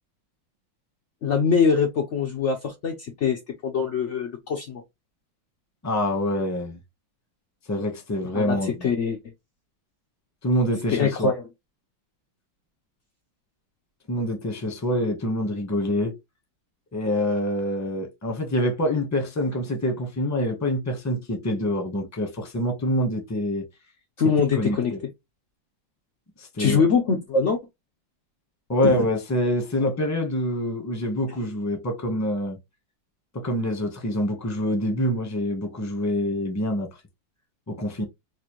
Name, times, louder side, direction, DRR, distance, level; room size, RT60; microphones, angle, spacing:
voice 1, 1.2-4.8 8.3-9.2 10.9-11.4 24.2-24.9 26.6-27.6 28.8-28.9, left 5 dB, 90° left, 0.6 m, -23 dB
voice 2, 5.8-6.8 7.7-8.9 10.4-11.3 14.1-16.2 16.9-23.7 24.5-25.0 26.4-26.8 28.7-32.6 33.3-36.9 37.7-38.0, left 1 dB, 15° left, 0.5 m, -26 dB
4.2 x 2.5 x 2.9 m
omnidirectional pair, 2.1 m